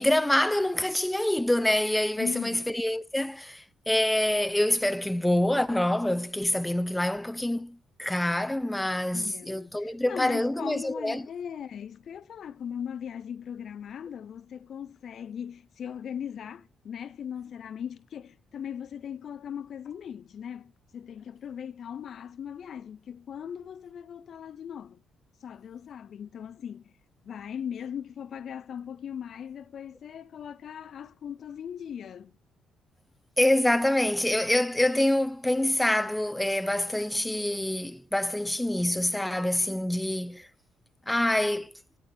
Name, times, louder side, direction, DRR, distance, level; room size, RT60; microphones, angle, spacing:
voice 1, 0.0-11.2 33.4-40.5 41.1-41.7, left 1 dB, 5° left, 0.6 m, -26 dB
voice 2, 2.2-2.7 9.1-25.0 25.4-26.9 27.2-32.3, left 8 dB, 60° left, 0.5 m, -39 dB
13.0 x 8.2 x 3.4 m
cardioid pair, 90°, 0 cm